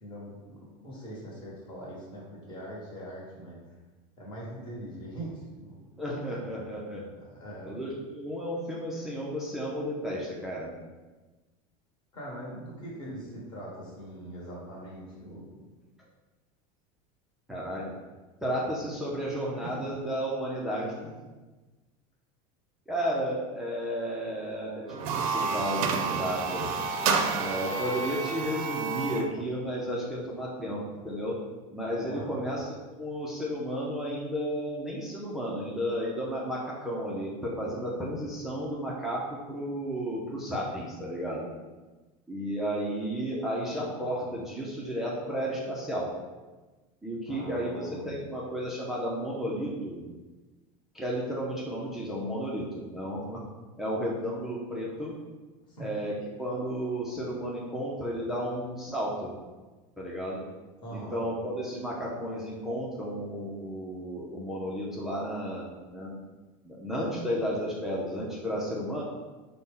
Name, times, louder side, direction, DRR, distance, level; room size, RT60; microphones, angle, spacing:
voice 1, 0.0-3.7 4.2-5.8 7.3-7.8 12.1-15.6 19.6-19.9 32.0-32.4 47.3-48.1 55.7-55.9 60.8-61.2, right 1 dB, 25° left, -5 dB, 1.1 m, -42 dB
voice 2, 6.0-7.0 7.6-10.8 17.5-18.0 18.4-21.2 22.9-26.7 27.3-31.3 31.7-32.7 33.0-41.5 42.3-46.1 47.0-50.0 50.9-53.4 53.8-55.1 55.8-56.1 56.4-59.3 60.0-60.4 60.9-66.2 66.6-69.0, equal, ahead, -5 dB, 0.3 m, -33 dB
sound 1, 24.9-29.3, right 5 dB, 75° right, 0.4 m, -29 dB
4.0 x 2.0 x 3.6 m, 1.2 s
supercardioid pair, 160°, 18 cm